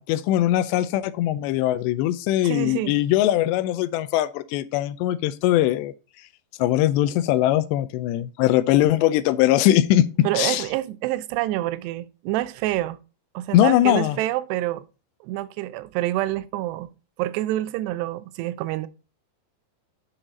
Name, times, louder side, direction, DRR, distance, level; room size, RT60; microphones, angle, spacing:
voice 1, 0.0-5.9 6.6-10.1 10.4-10.6 13.5-14.2, left 13 dB, 90° left, 2.8 m, -21 dB
voice 2, 2.4-3.0 10.2-13.0 13.3-14.8 15.2-16.9 17.2-18.9, right 15 dB, 80° right, 2.7 m, -27 dB
9.6 x 6.0 x 3.9 m
omnidirectional pair, 4.9 m